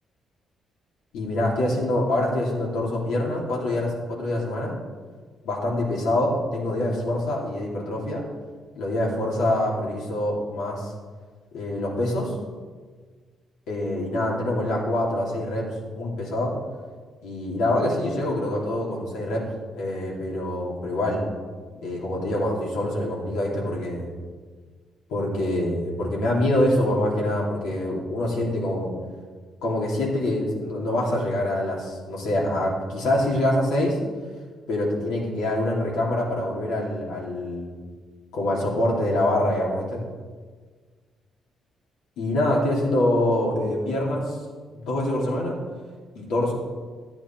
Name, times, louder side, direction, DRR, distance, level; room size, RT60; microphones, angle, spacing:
voice 1, 1.1-4.8 5.4-8.2 8.8-10.9 11.5-12.3 13.7-16.5 17.2-19.4 19.7-21.2 21.8-24.1 25.1-28.9 29.6-34.0 34.7-37.8 38.3-40.0 42.2-44.4 44.7-45.6 46.1-46.5, left 1 dB, 90° left, -3 dB, 2.8 m, -25 dB
12.5 x 8.8 x 4.5 m, 1.5 s
cardioid pair, 90°, 0 cm